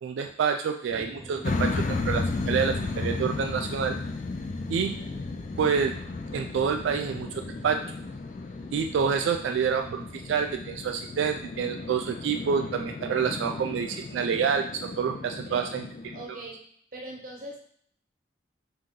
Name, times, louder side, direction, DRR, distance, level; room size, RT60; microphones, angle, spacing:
voice 1, 0.0-4.0 4.7-5.0 5.6-6.0 6.3-7.8 8.7-15.9, right 6 dB, 80° right, 4 dB, 0.3 m, -28 dB
sound 1, 0.9-11.1, right 1 dB, 10° right, 0.9 m, -49 dB
sound 2, 1.4-16.2, left 3 dB, 40° left, 0.3 m, -34 dB
voice 2, 16.1-16.6 16.9-17.6, right 1 dB, 45° right, -1 dB, 0.8 m, -40 dB
3.7 x 2.8 x 3.7 m, 0.63 s
head